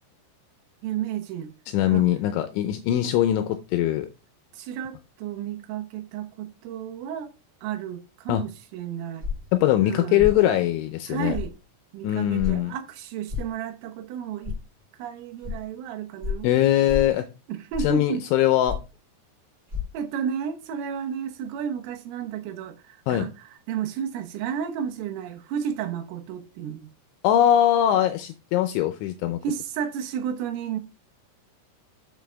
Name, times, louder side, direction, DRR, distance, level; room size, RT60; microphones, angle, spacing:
voice 1, 0.8-1.5 1.9-2.1 4.5-7.3 7.6-9.3 9.8-10.3 11.1-11.5 11.9-14.6 15.0-16.5 17.5-18.2 19.9-26.9 29.4-30.8, right 8 dB, 90° right, 3.7 m, -32 dB
voice 2, 1.7-4.1 8.3-8.4 9.5-11.3 12.0-12.7 16.4-17.2 17.8-18.8 23.1-23.3 27.2-29.4, left 12 dB, 80° left, 2.9 m, -21 dB
sound 1, 9.2-9.5 10.2-10.4 11.3-11.5 12.4-12.6 13.3-13.5 14.4-14.6 15.4-15.5 16.2-16.4 16.9-17.1 17.7-18.0 18.7-18.9 19.7-19.8, left 6 dB, 20° right, 3.9 m, -30 dB
7.9 x 7.3 x 3.4 m
omnidirectional pair, 5.8 m